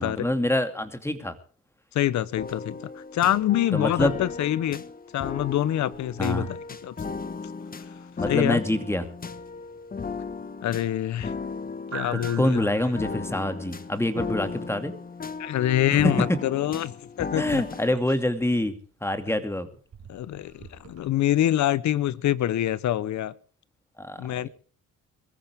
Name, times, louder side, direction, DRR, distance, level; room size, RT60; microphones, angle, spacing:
voice 1, 0.0-1.3 3.7-4.2 6.2-6.5 8.2-9.1 12.1-14.9 15.9-16.1 17.4-18.7 19.0-19.7 24.0-24.5, left 1 dB, 10° left, 2.4 m, -26 dB
voice 2, 1.9-4.8 5.1-6.9 8.3-8.6 10.6-11.3 11.9-12.7 15.4-16.9 17.2-17.6 20.1-23.3 24.2-24.5, left 12 dB, 70° left, 0.9 m, -25 dB
sound 1, 2.4-18.0, left 4 dB, 30° left, 1.2 m, -36 dB
sound 2, 5.9-21.1, right 7 dB, 55° right, 4.4 m, -49 dB
22.5 x 14.5 x 3.6 m
cardioid pair, 90°, 30 cm